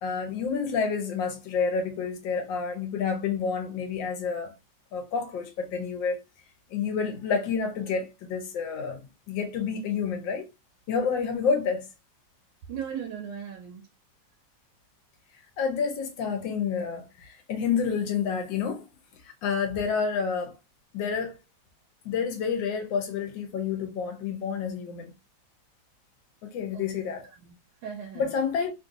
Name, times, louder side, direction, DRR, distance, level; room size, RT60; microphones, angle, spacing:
voice 1, 0.0-4.5 4.9-6.2 6.7-10.5 10.9-11.9 15.6-18.9 19.4-20.6 20.9-21.3 22.0-25.1 26.4-27.3 28.1-28.7, left 6 dB, 85° left, 1.5 m, -29 dB
voice 2, 12.7-13.8 26.7-26.8 27.4-28.4, right 8 dB, 85° right, 1.3 m, -38 dB
3.3 x 2.6 x 2.5 m
omnidirectional pair, 2.0 m